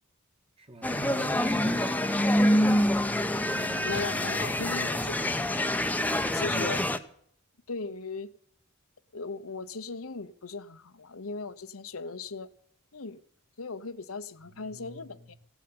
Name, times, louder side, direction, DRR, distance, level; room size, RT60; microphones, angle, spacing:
voice 1, 0.6-2.2 6.4-6.7 14.5-15.4, right 1 dB, 25° right, 1.8 m, -43 dB
sound 1, 0.8-7.0, left 1 dB, 10° left, 0.9 m, -26 dB
voice 2, 3.5-5.5 6.2-6.8 7.7-8.3 9.1-12.5 12.9-13.2 13.6-15.3, left 3 dB, 75° left, 1.1 m, -38 dB
16.5 x 9.3 x 8.7 m
head